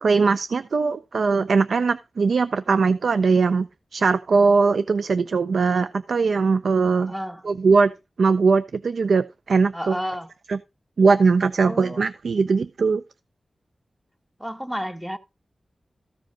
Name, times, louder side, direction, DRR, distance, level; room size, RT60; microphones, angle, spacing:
voice 1, 0.0-7.1 7.4-7.9 8.2-10.0 10.5-10.6 11.0-13.0, right 4 dB, 85° right, 0.5 m, -20 dB
voice 2, 7.0-7.4 9.7-10.3 11.6-12.0 14.4-15.2, equal, 5° right, 1.2 m, -31 dB
14.0 x 5.0 x 5.1 m
wide cardioid pair, 70°, 0 cm